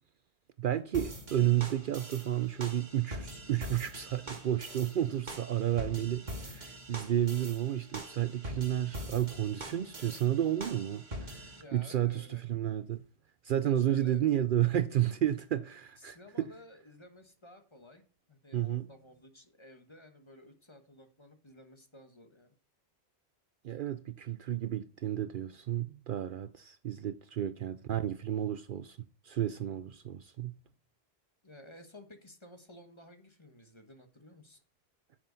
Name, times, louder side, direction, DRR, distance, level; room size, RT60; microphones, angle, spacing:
voice 1, 0.6-13.0 13.4-16.5 18.5-18.9 23.6-30.6, right 11 dB, 60° right, 0.6 m, -32 dB
sound 1, 0.9-11.6, right 1 dB, 45° right, 2.0 m, -44 dB
voice 2, 11.6-12.4 13.6-14.2 16.0-18.0 18.3-22.5 23.7-23.8 31.4-34.6, left 1 dB, 25° left, 1.3 m, -54 dB
9.5 x 7.6 x 4.0 m
omnidirectional pair, 1.1 m